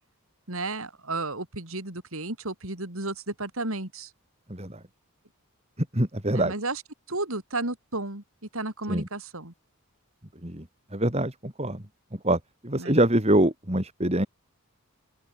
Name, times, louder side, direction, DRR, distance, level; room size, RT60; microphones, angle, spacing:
voice 1, 0.5-4.1 6.3-6.8 7.1-8.2 8.5-9.5 12.8-12.9, right 2 dB, 70° right, 3.8 m, -33 dB
voice 2, 4.5-4.8 5.8-6.5 8.9-9.1 10.4-11.8 12.1-14.3, right 1 dB, 30° right, 3.4 m, -25 dB
open air
head